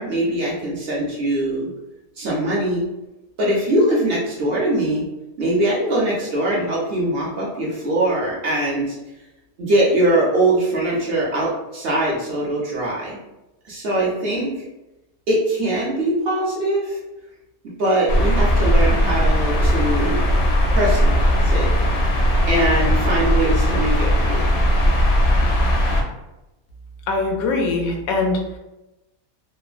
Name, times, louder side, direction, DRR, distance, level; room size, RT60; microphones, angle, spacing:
voice 1, 0.0-1.7 2.2-2.9 3.4-5.1 5.4-9.0 9.6-13.2 13.7-14.5 15.3-17.0 17.8-20.2 20.7-21.7 22.5-24.6, right 1 dB, 55° right, -4 dB, 0.7 m, -22 dB
sound 1, 18.1-26.0, equal, 65° left, 0.7 m, -18 dB
voice 2, 27.1-28.4, left 3 dB, 85° left, 2 dB, 1.0 m, -22 dB
3.1 x 2.0 x 2.4 m, 0.98 s
omnidirectional pair, 1.5 m